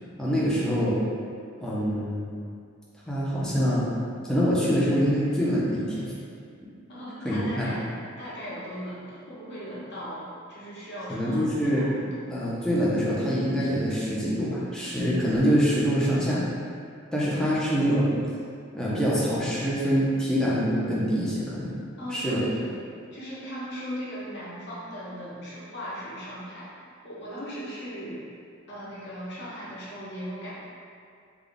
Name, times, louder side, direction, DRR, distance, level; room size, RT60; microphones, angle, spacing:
voice 1, 0.2-1.0 1.6-2.3 3.1-3.9 4.3-6.1 7.2-7.7 11.1-11.9 12.3-16.4 17.1-18.1 18.7-21.8 22.1-22.4, equal, 5° left, -8 dB, 0.6 m, -25 dB
voice 2, 6.9-12.2 17.3-18.0 22.0-22.8 23.1-26.7 27.0-28.2 28.7-30.5, equal, 55° left, -8 dB, 1.0 m, -38 dB
3.5 x 2.3 x 3.9 m, 2.3 s
head